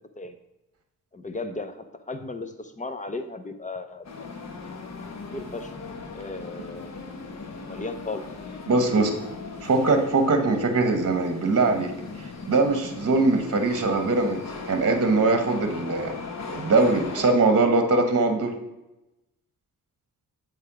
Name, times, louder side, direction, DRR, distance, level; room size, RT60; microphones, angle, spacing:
voice 1, 1.1-4.1 5.3-5.7 6.2-7.2 7.7-8.3 8.9-9.2, left 3 dB, 20° left, 8 dB, 0.7 m, -36 dB
sound 1, 4.0-17.2, left 4 dB, 50° left, 1.0 m, -38 dB
voice 2, 8.7-9.1 9.6-11.9 12.2-16.1 16.5-18.5, right 3 dB, 40° right, 5 dB, 1.1 m, -22 dB
8.2 x 3.5 x 5.0 m, 0.98 s
cardioid pair, 75°, 34 cm